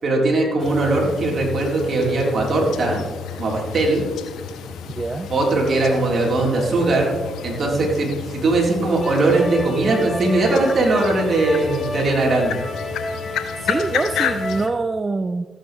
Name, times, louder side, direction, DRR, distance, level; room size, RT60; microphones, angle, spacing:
voice 1, 0.0-3.0 3.4-4.0 5.3-7.2 7.4-12.6, right 2 dB, 55° right, -2 dB, 3.7 m, -20 dB
sound 1, 0.6-14.7, left 8 dB, 75° left, 1.0 m, -32 dB
voice 2, 5.0-5.3 7.6-7.8 13.6-15.5, right 3 dB, 30° right, 9 dB, 0.6 m, -25 dB
sound 2, 9.0-14.7, left 2 dB, 25° left, 2.0 m, -31 dB
14.0 x 9.2 x 3.2 m, 1.3 s
supercardioid pair, 50°, 0 cm